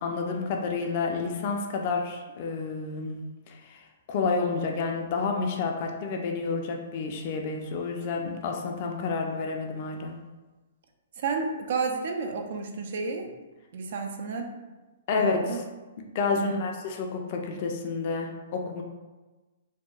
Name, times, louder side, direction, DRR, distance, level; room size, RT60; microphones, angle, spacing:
voice 1, 0.0-3.8 4.1-10.2 15.1-15.6 16.1-18.8, left 4 dB, 45° left, 2 dB, 0.4 m, -30 dB
voice 2, 11.2-13.3 13.7-14.5 15.2-15.6 16.3-16.6, right 4 dB, 60° right, 4 dB, 0.4 m, -31 dB
2.7 x 2.1 x 2.3 m, 1.2 s
hypercardioid pair, 125°, 0 cm